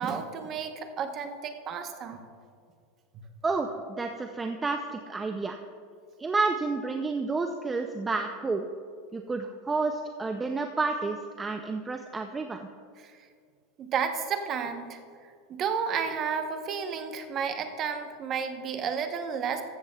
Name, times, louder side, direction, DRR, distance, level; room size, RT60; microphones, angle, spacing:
voice 1, 0.0-2.3 13.0-13.2 13.8-15.0 15.5-19.6, right 6 dB, 25° right, 6 dB, 0.8 m, -32 dB
voice 2, 3.4-5.6 6.2-8.7 9.1-12.7, right 3 dB, 10° right, 5 dB, 0.4 m, -30 dB
14.5 x 13.5 x 2.2 m, 2.2 s
supercardioid pair, 165°, 0 cm